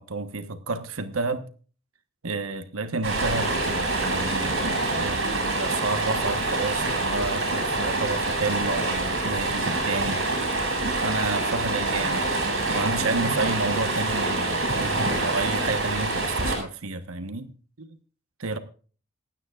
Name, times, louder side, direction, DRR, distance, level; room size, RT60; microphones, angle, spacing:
voice 1, 0.0-1.5 2.2-10.2 11.0-17.5 17.8-17.9 18.4-18.6, right 3 dB, 75° right, 1.2 m, -30 dB
Stream, 3.0-16.6, right 2 dB, 60° right, 7.1 m, -26 dB
27.0 x 9.3 x 2.5 m
head